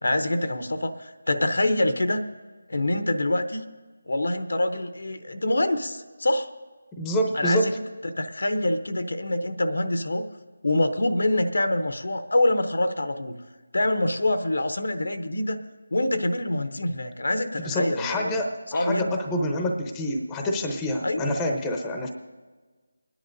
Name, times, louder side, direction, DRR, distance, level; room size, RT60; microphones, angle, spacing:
voice 1, 0.0-2.2 2.7-3.7 4.1-6.5 7.3-7.7 8.0-10.3 10.6-13.4 13.7-15.6 15.9-19.1 21.0-21.4, left 1 dB, 75° left, 9 dB, 0.8 m, -25 dB
voice 2, 6.9-7.7 17.6-22.1, equal, 10° left, 3 dB, 0.8 m, -27 dB
29.0 x 10.0 x 2.6 m, 1.3 s
figure-of-eight pair, 165°, 0 cm